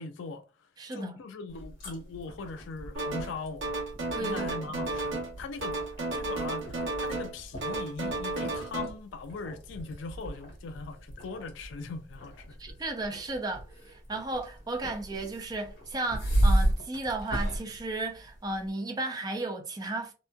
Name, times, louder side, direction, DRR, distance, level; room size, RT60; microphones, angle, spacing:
voice 1, 0.0-3.7 4.2-5.8 6.1-12.6, left 4 dB, 70° left, 0.3 m, -40 dB
voice 2, 0.8-1.2 4.1-4.6 12.6-20.1, right 2 dB, 20° right, 0.4 m, -34 dB
sound 1, 1.5-18.7, right 1 dB, 55° left, 1.3 m, -34 dB
sound 2, 3.0-3.4 3.6-5.3 5.6-7.3 7.6-8.9, right 2 dB, 75° right, 0.8 m, -33 dB
2.8 x 2.1 x 2.2 m
head